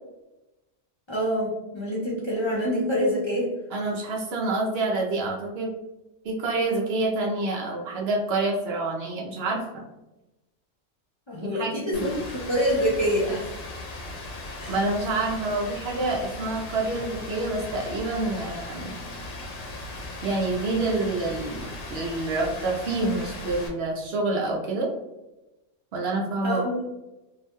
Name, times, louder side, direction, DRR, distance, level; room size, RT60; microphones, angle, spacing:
voice 1, 1.1-3.5 11.3-12.2 12.5-13.5 14.6-14.8 26.4-26.9, equal, 35° left, -5 dB, 0.4 m, -26 dB
voice 2, 3.7-5.7 6.2-9.8 11.5-12.1 14.7-18.9 20.2-24.9 25.9-26.6, right 2 dB, 65° right, -1 dB, 0.7 m, -27 dB
Rain, 11.9-23.7, left 2 dB, 85° left, 1.0 m, -38 dB
2.6 x 2.1 x 2.9 m, 0.99 s
omnidirectional pair, 1.3 m